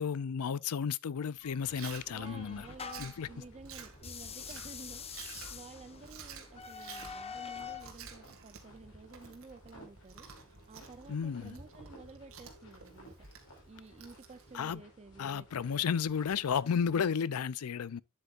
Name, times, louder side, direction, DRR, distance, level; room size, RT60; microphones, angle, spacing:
voice 1, 0.0-2.7 3.0-3.3 11.1-11.6 14.5-14.8 15.2-18.0, left 7 dB, 80° left, 0.4 m, -33 dB
sound 1, 1.4-3.3 4.0-7.9, left 7 dB, 30° left, 0.8 m, -45 dB
sound 2, 1.6-17.2, equal, 65° left, 4.7 m, -56 dB
Chewing mastication, 1.7-14.7, right 6 dB, 70° right, 2.0 m, -51 dB
voice 2, 2.1-15.9 16.6-16.8, right 3 dB, 30° right, 0.5 m, -53 dB
9.7 x 7.9 x 2.4 m
head